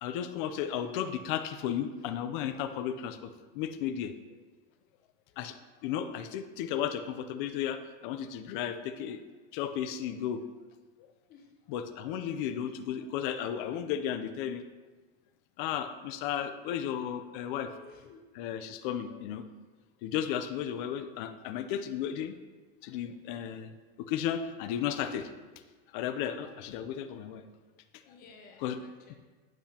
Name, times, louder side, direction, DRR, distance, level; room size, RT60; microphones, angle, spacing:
voice 1, 0.0-3.3 3.5-4.1 5.4-5.5 5.8-9.2 9.5-10.4 11.7-14.6 15.6-17.7 18.3-19.4 20.0-22.3 22.8-23.7 24.1-25.3 25.9-27.4 28.6-28.8, left 9 dB, 50° left, 10 dB, 0.6 m, -34 dB
voice 2, 17.6-18.2 28.1-29.1, left 5 dB, 30° left, 3 dB, 0.9 m, -54 dB
8.9 x 8.2 x 2.9 m, 1.3 s
supercardioid pair, 170°, 31 cm